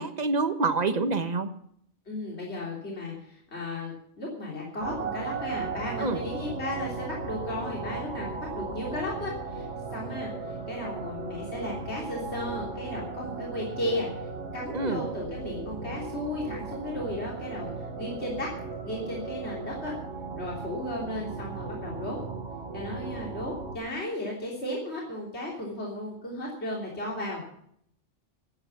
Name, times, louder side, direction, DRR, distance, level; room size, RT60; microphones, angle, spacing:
voice 1, 0.0-1.5 6.0-6.2 14.7-15.1, right 3 dB, 35° right, 9 dB, 1.2 m, -27 dB
voice 2, 2.1-9.7 9.9-14.1 14.5-18.5 18.8-19.9 20.4-22.2 22.7-27.4, left 1 dB, 60° left, -3 dB, 3.6 m, -35 dB
sound 1, 4.8-23.8, right 4 dB, 65° right, 1.8 m, -37 dB
14.5 x 9.3 x 7.0 m, 0.68 s
omnidirectional pair, 1.3 m